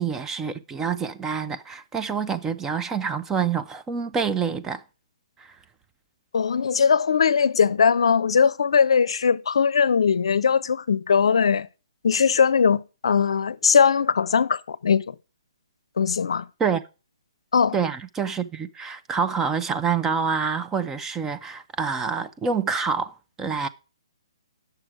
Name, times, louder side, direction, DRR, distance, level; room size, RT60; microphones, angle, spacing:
voice 1, 0.0-4.8 5.4-5.5 16.6-16.8 17.7-23.7, right 6 dB, 10° right, 0.5 m, -27 dB
voice 2, 6.3-11.7 12.0-15.1 16.0-16.4 17.5-17.7, left 6 dB, 70° left, 0.5 m, -20 dB
9.8 x 6.8 x 4.7 m
hypercardioid pair, 145°, 3 cm